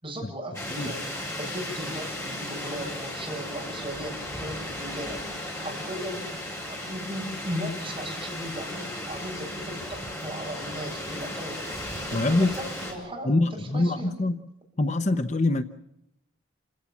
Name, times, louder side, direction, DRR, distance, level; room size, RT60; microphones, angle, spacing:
voice 1, 0.0-6.3 6.7-14.2, equal, 25° right, -1 dB, 8.0 m, -37 dB
sound 1, 0.5-12.9, left 1 dB, 15° left, 5.9 m, -35 dB
voice 2, 12.1-12.5 13.2-14.4 14.8-15.6, left 2 dB, 35° left, 10 dB, 0.8 m, -24 dB
28.5 x 17.0 x 7.2 m, 0.81 s
head